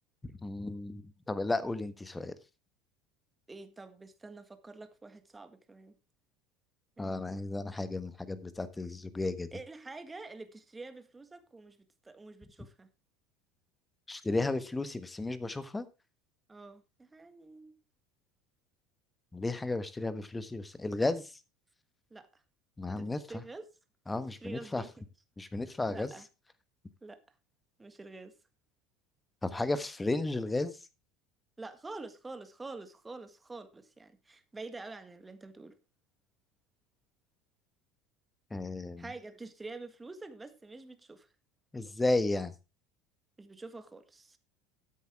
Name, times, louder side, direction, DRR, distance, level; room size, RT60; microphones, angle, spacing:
voice 1, 0.2-2.3 7.0-9.5 14.1-15.8 19.3-21.4 22.8-23.4 24.1-24.8 25.4-26.1 29.4-30.7 38.5-39.1 41.7-42.5, left 2 dB, 15° left, 1.3 m, -33 dB
voice 2, 3.5-5.9 7.0-7.6 9.5-11.8 12.0-12.9 16.5-17.7 22.1-22.4 22.9-23.6 24.4-24.9 25.9-26.3 27.0-27.2 27.8-28.3 31.6-35.8 39.0-41.3 43.4-44.4, right 3 dB, 15° right, 1.6 m, -47 dB
13.0 x 8.4 x 3.5 m
figure-of-eight pair, 70°, 0 cm